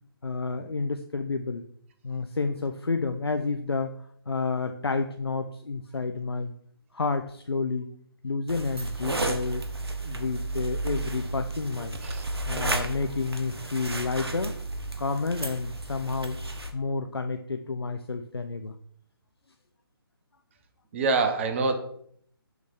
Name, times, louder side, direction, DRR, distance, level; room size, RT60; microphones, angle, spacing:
voice 1, 0.2-1.6 2.0-4.0 4.3-6.5 6.9-8.0 8.2-9.7 10.0-12.0 12.5-14.5 15.0-16.4 16.7-18.7, left 4 dB, 85° left, 8 dB, 0.5 m, -30 dB
sound 1, 8.5-16.7, right 2 dB, 85° right, 0.9 m, -33 dB
voice 2, 20.9-21.7, right 4 dB, 30° right, 6 dB, 0.7 m, -26 dB
6.4 x 3.2 x 5.0 m, 0.65 s
figure-of-eight pair, 145°, 13 cm